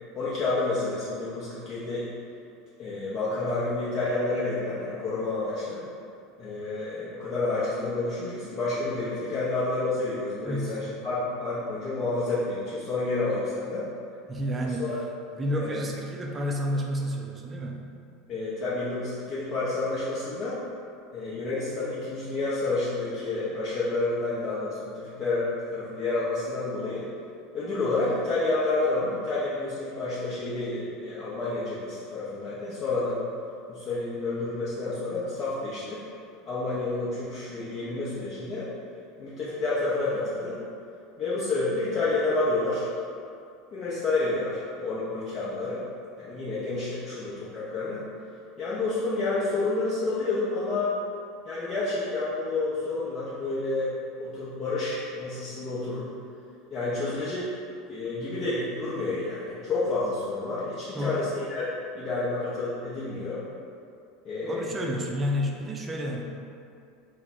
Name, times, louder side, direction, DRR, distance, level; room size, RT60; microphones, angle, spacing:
voice 1, 0.1-2.1 2.8-5.8 6.4-13.9 14.6-15.0 15.5-15.8 18.3-20.6 21.1-27.1 27.5-33.2 33.7-36.0 36.5-38.7 39.2-40.6 41.2-42.9 43.7-45.8 46.2-48.1 48.6-50.9 51.4-56.1 56.7-57.5 57.9-61.7 61.9-63.4 64.2-64.9, left 2 dB, 40° left, -10 dB, 0.7 m, -29 dB
voice 2, 10.4-10.8 14.3-14.9 15.3-17.8 60.9-61.2 64.4-66.2, equal, 25° right, 1 dB, 0.5 m, -30 dB
3.2 x 2.0 x 4.1 m, 2.5 s
figure-of-eight pair, 75°, 0 cm